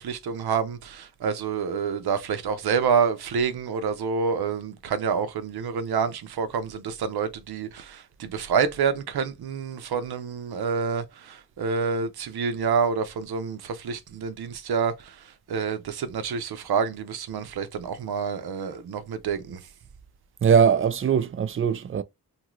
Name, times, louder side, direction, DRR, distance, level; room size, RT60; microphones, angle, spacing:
voice 1, 0.0-19.6, right 6 dB, 80° right, 0.6 m, -28 dB
voice 2, 20.4-22.0, right 7 dB, 35° right, 0.4 m, -21 dB
2.7 x 2.5 x 3.0 m
cardioid pair, 50°, 38 cm